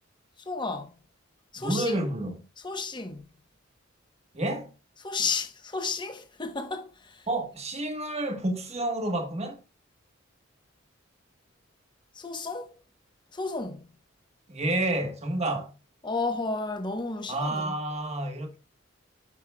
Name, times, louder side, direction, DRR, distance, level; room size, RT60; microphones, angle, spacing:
voice 1, 0.4-0.9 1.5-2.0 2.6-3.3 5.0-7.3 12.1-12.8 13.3-13.9 16.0-17.8, left 4 dB, 25° left, 1.0 m, -33 dB
voice 2, 1.6-2.4 4.3-4.7 7.3-9.6 14.5-15.7 17.3-18.6, right 1 dB, 30° right, 1.3 m, -29 dB
11.0 x 5.3 x 2.3 m
head